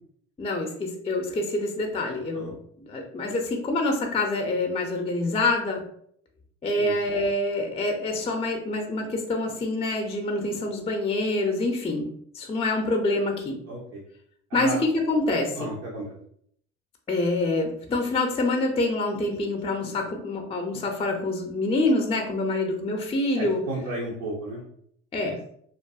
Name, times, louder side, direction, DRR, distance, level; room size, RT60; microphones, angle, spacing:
voice 1, 0.4-5.8 6.6-13.6 14.5-15.6 17.1-23.6 25.1-25.4, left 2 dB, 15° left, 2 dB, 0.5 m, -26 dB
voice 2, 13.7-14.0 14.5-14.8 15.6-16.2 23.3-24.6, right 1 dB, 85° right, -4 dB, 0.7 m, -33 dB
2.5 x 2.4 x 2.3 m, 0.66 s
hypercardioid pair, 60°, 36 cm